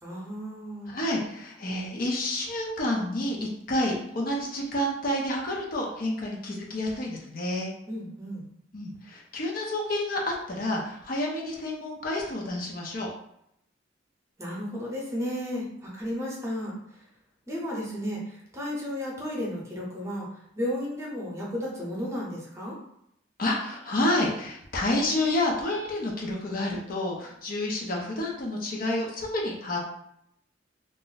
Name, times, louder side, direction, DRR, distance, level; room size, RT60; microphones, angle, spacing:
voice 1, 0.0-0.9 7.9-8.5 14.4-17.0 17.5-22.8, equal, 15° right, -4 dB, 0.7 m, -33 dB
voice 2, 0.9-7.7 8.7-13.1 23.4-29.8, left 1 dB, 50° left, -1 dB, 0.6 m, -29 dB
2.5 x 2.0 x 3.9 m, 0.75 s
head